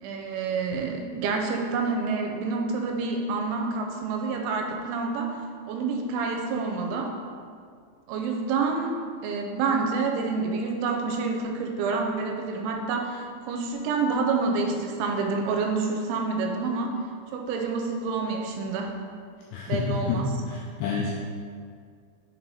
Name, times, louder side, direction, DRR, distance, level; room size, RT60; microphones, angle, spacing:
voice 1, 0.0-5.4 5.7-7.1 8.1-9.0 9.2-17.0 17.3-18.9 19.7-20.3, right 4 dB, 85° right, 2 dB, 3.0 m, -28 dB
voice 2, 20.5-21.1, left 6 dB, 90° left, -3 dB, 2.4 m, -28 dB
6.7 x 4.6 x 4.1 m, 2.2 s
omnidirectional pair, 5.4 m